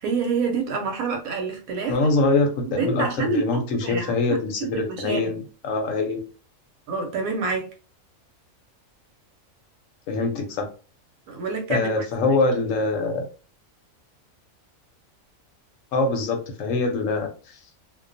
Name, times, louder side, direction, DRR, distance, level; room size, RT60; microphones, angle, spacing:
voice 1, 0.0-2.0 2.7-4.2 4.6-5.3 6.9-7.7 11.3-12.0 12.3-12.4, right 4 dB, 90° right, 1.1 m, -27 dB
voice 2, 1.9-6.2 10.1-10.7 11.7-13.3 15.9-17.6, left 3 dB, 75° left, 0.9 m, -24 dB
2.3 x 2.2 x 2.5 m
omnidirectional pair, 1.4 m